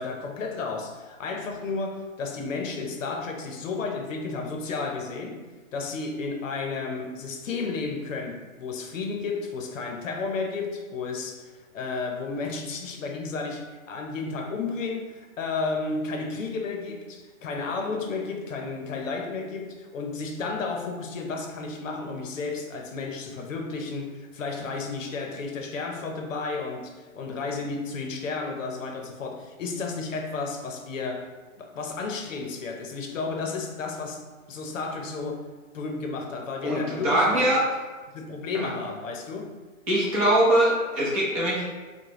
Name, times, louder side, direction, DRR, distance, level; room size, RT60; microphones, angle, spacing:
voice 1, 0.0-5.4 5.7-31.3 31.6-34.2 34.5-35.4 35.7-37.5 38.1-39.5, left 4 dB, 65° left, 3 dB, 0.7 m, -32 dB
voice 2, 36.6-37.6 39.9-41.7, right 1 dB, 25° right, -6 dB, 0.8 m, -22 dB
4.7 x 2.3 x 2.9 m, 1.3 s
hypercardioid pair, 160°, 41 cm